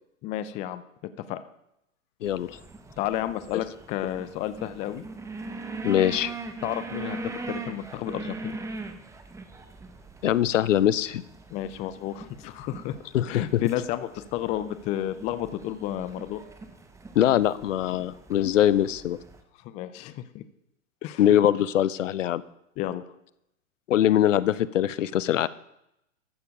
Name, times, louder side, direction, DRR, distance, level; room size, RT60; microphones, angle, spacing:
voice 1, 0.2-0.8 1.3-1.4 3.0-5.0 6.6-7.2 7.5-8.6 11.5-13.0 13.3-16.4 19.6-20.4 21.0-21.4 22.8-23.0, left 12 dB, 20° left, 13 dB, 0.4 m, -31 dB
voice 2, 2.2-2.6 5.8-6.3 10.2-11.2 13.1-13.6 17.2-19.2 21.2-22.4 23.9-25.5, left 11 dB, 70° left, 19 dB, 0.7 m, -22 dB
sound 1, 2.3-19.4, right 3 dB, 5° right, 0.9 m, -41 dB
14.5 x 6.8 x 5.2 m, 0.82 s
hypercardioid pair, 115°, 39 cm